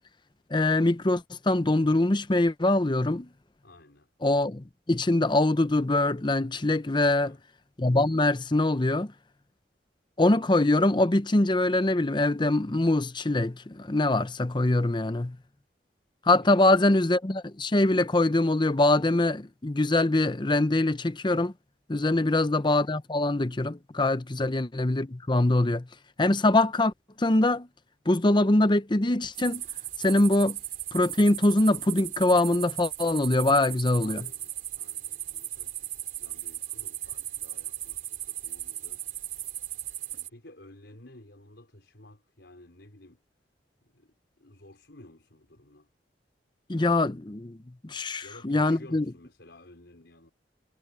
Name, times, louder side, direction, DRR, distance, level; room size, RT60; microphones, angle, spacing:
voice 1, 0.5-3.3 4.2-7.3 7.8-9.1 10.2-15.4 16.3-21.5 21.9-25.9 26.2-26.9 27.2-27.7 28.1-29.6 30.0-30.6 30.9-34.2 46.7-47.6 47.8-49.0, left 2 dB, 25° left, 0.8 m, -23 dB
voice 2, 3.6-4.1 7.0-7.4 16.4-16.8 24.4-24.6 33.9-39.0 40.1-43.2 43.8-45.9 48.2-50.3, left 1 dB, 80° left, 4.4 m, -53 dB
sound 1, 29.3-40.3, right 12 dB, 50° right, 3.5 m, -37 dB
head